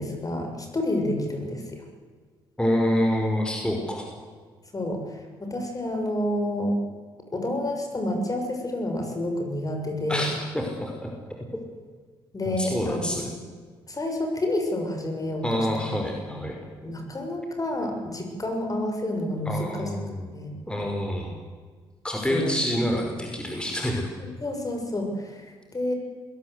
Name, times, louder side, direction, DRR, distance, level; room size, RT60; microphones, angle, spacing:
voice 1, 0.0-1.8 4.7-6.8 7.3-10.3 12.3-13.1 13.9-15.9 16.3-16.4 16.8-19.9 20.3-20.5 22.3-22.5 24.2-25.9, left 1 dB, 30° left, 3 dB, 6.6 m, -29 dB
voice 2, 2.6-4.1 10.1-11.1 12.5-13.3 15.4-16.6 19.5-20.3 20.7-21.3 22.0-24.1, equal, 10° left, 1 dB, 5.2 m, -27 dB
21.0 x 18.5 x 8.2 m, 1.6 s
hypercardioid pair, 50°, 12 cm